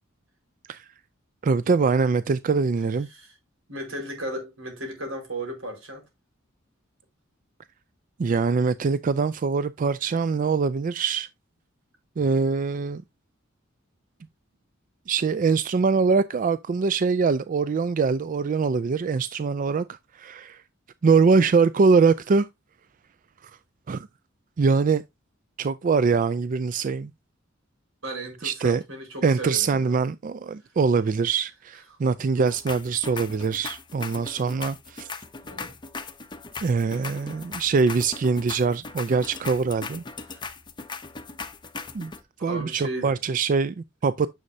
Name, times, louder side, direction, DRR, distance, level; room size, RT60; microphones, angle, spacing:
voice 1, 1.4-3.1 8.2-11.3 12.2-13.0 15.1-20.6 21.0-22.5 23.9-24.1 24.6-25.0 25.6-27.1 28.4-28.8 29.2-35.1 36.6-40.0 41.9-42.1 42.4-44.3, right 4 dB, 40° right, 0.4 m, -23 dB
voice 2, 3.7-6.0 28.0-30.0 32.2-32.5 35.4-35.7 42.4-43.2, right 1 dB, 80° right, 4.7 m, -35 dB
sound 1, 32.5-42.2, left 4 dB, 25° left, 0.8 m, -39 dB
9.7 x 6.4 x 2.7 m
head